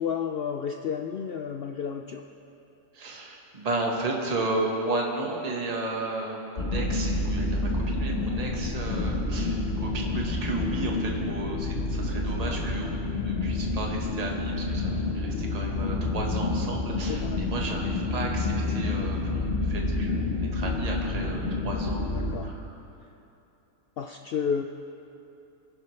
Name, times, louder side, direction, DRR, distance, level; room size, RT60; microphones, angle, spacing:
voice 1, 0.0-2.2 8.9-9.1 12.5-12.6 17.1-17.5 22.1-22.5 24.0-24.6, left 7 dB, 85° left, 4 dB, 0.5 m, -32 dB
voice 2, 2.9-20.2 20.5-22.6, right 2 dB, 25° right, -1 dB, 1.4 m, -33 dB
sound 1, 6.6-22.3, left 2 dB, 40° left, 1.6 m, -28 dB
23.0 x 11.0 x 3.3 m, 2.9 s
omnidirectional pair, 1.6 m